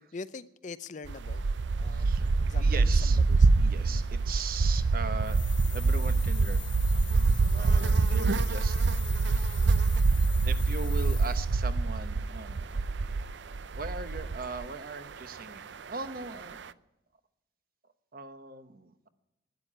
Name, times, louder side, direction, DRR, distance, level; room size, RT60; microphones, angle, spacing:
voice 1, 0.0-1.4 1.7-2.8 3.3-3.4 3.9-4.0 7.6-8.1, left 4 dB, 40° left, 0.6 m, -44 dB
sound 1, 1.1-14.7, right 3 dB, 80° right, 0.5 m, -25 dB
voice 2, 1.8-2.3 2.6-3.2 3.5-5.4 5.7-6.9 7.4-8.8 9.3-9.6 10.4-13.3 13.7-16.6 18.1-19.1, right 3 dB, 50° right, 1.0 m, -40 dB
sound 2, 5.2-11.6, left 8 dB, 25° left, 1.4 m, -45 dB
12.0 x 10.0 x 10.0 m
head